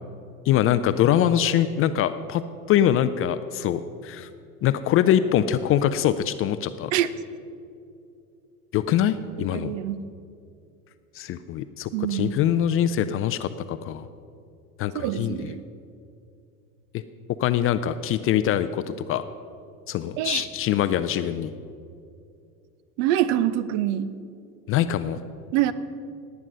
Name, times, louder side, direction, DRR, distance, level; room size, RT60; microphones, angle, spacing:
voice 1, 0.5-2.4 2.7-4.3 4.6-6.9 8.7-9.7 11.2-14.1 14.8-15.5 16.9-17.0 17.4-18.8 19.1-19.2 19.9-21.5 24.7-25.2, left 10 dB, 30° left, 12 dB, 0.4 m, -23 dB
voice 2, 9.5-10.0 11.9-12.4 14.9-15.6 20.2-20.4 23.0-24.1 25.5-25.7, right 12 dB, 55° right, 15 dB, 0.8 m, -25 dB
18.0 x 9.3 x 5.4 m, 2.5 s
hypercardioid pair, 85°, 48 cm